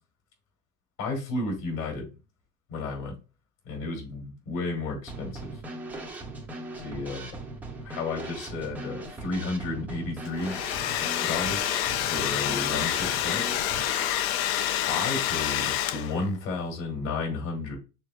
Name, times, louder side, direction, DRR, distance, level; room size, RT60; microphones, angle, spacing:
voice 1, 1.0-2.1 2.7-3.1 3.6-5.5 6.8-7.4 7.8-10.5 11.2-11.8 12.0-13.4 14.9-17.8, left 3 dB, 60° left, 2 dB, 2.9 m, -32 dB
Drum kit / Snare drum, 5.1-14.1, right 2 dB, 5° right, 0.5 m, -39 dB
Domestic sounds home sounds, 10.3-16.3, left 11 dB, 45° left, 0.5 m, -28 dB
6.2 x 3.5 x 2.3 m, 0.30 s
supercardioid pair, 135°, 43 cm